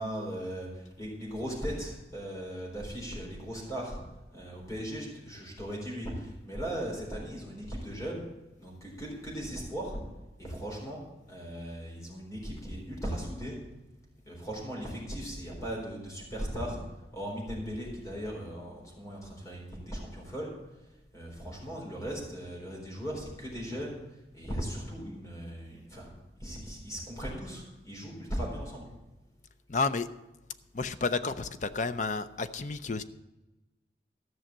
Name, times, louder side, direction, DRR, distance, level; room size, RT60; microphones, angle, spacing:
voice 1, 0.0-4.0 4.3-8.2 8.6-10.0 10.4-11.0 11.3-13.6 14.3-16.8 17.1-20.5 21.1-24.0 24.3-26.1 26.4-28.9, equal, 20° left, -2 dB, 3.9 m, -38 dB
voice 2, 29.7-30.1 30.7-33.0, left 4 dB, 45° left, 11 dB, 0.5 m, -31 dB
14.0 x 6.4 x 7.4 m, 1.0 s
head